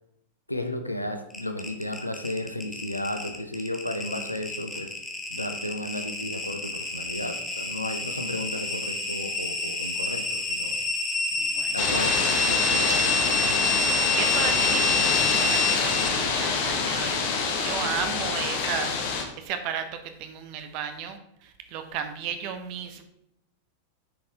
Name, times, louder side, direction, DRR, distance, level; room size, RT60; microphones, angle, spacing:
voice 1, 0.5-4.9 5.3-10.7 11.7-13.6, left 1 dB, 85° left, 7 dB, 0.9 m, -34 dB
sound 1, 1.3-16.2, left 2 dB, 10° left, 1.6 m, -28 dB
voice 2, 11.4-11.8 14.0-17.1 17.6-18.9 19.4-19.9 20.2-23.0, right 8 dB, 45° right, 7 dB, 1.2 m, -34 dB
sound 2, 11.8-19.2, left 5 dB, 50° left, 1.5 m, -26 dB
10.5 x 6.6 x 3.5 m, 0.83 s
figure-of-eight pair, 90°, 0 cm